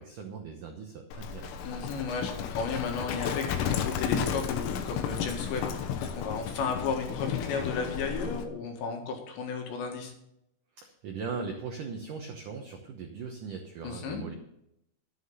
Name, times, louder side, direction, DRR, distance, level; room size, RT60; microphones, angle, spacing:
voice 1, 0.0-1.5 10.8-14.3, right 5 dB, 80° right, 3 dB, 1.8 m, -39 dB
Livestock farm animals working animals, 1.1-8.5, left 7 dB, 90° left, 3.6 m, -33 dB
voice 2, 1.6-5.7 6.1-10.1 13.8-14.2, left 5 dB, 70° left, 2 dB, 3.9 m, -34 dB
12.0 x 9.1 x 5.5 m, 0.79 s
omnidirectional pair, 5.5 m